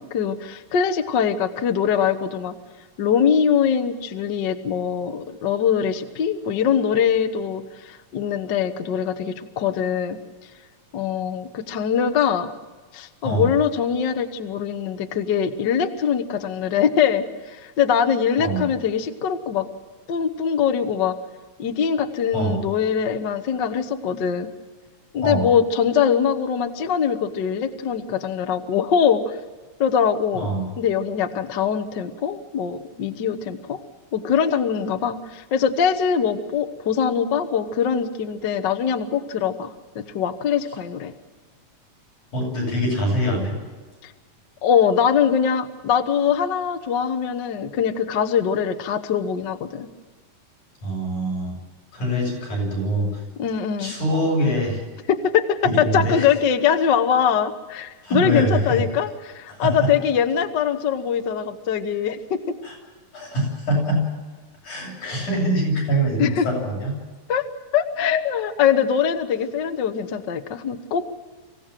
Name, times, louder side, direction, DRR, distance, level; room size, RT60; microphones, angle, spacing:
voice 1, 0.0-2.5 3.0-10.2 10.9-12.5 12.9-19.7 20.1-21.2 21.6-24.5 25.1-29.4 29.8-30.5 30.8-33.8 34.1-41.1 44.0-44.1 44.6-49.9 53.4-53.9 55.1-62.6 66.2-66.5 67.3-67.5 67.7-71.1, left 7 dB, 55° left, 8 dB, 1.3 m, -22 dB
voice 2, 18.4-18.7 22.3-22.6 25.2-25.4 30.3-30.6 42.3-43.5 50.8-51.5 51.9-53.1 53.8-54.8 55.6-56.3 58.0-58.8 59.5-59.9 62.6-62.7 63.1-64.0 64.6-67.0, right 1 dB, 80° left, -2 dB, 9.6 m, -24 dB
25.0 x 16.5 x 7.5 m, 1.4 s
omnidirectional pair, 3.5 m